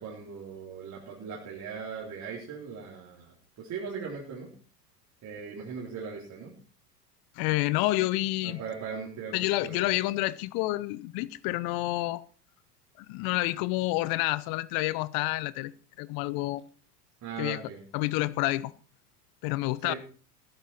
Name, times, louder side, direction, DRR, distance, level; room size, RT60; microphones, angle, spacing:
voice 1, 0.0-4.5 5.2-6.5 8.4-9.3 9.6-9.9 17.2-17.8 19.8-20.0, right 6 dB, 35° right, 4.0 m, -39 dB
voice 2, 7.3-8.6 9.3-12.2 13.0-15.7 16.0-16.6 17.4-17.6 17.9-18.7 19.4-19.9, left 19 dB, 45° left, 0.9 m, -29 dB
15.0 x 12.5 x 4.4 m
hypercardioid pair, 90°, 48 cm